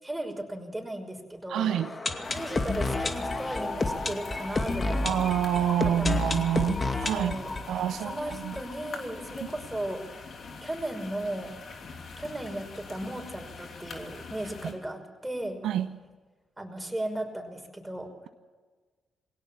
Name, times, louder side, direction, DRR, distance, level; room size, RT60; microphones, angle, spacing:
voice 1, 0.0-1.7 2.2-5.2 6.0-6.3 6.7-7.5 8.0-10.3 10.6-11.5 12.2-15.6 16.6-18.1, right 1 dB, 10° right, 3 dB, 5.7 m, -36 dB
voice 2, 1.5-1.9 5.0-7.4 7.7-8.6 14.6-14.7 15.6-15.9, right 11 dB, 75° right, 11 dB, 0.7 m, -27 dB
sound 1, 1.6-9.3 9.6-9.7 9.9-10.0 10.5-10.6, left 3 dB, 35° left, 2.3 m, -31 dB
sound 2, 2.2-14.7, left 4 dB, 60° left, 3.0 m, -44 dB
21.0 x 17.5 x 7.4 m, 1.4 s
hypercardioid pair, 50°, 0 cm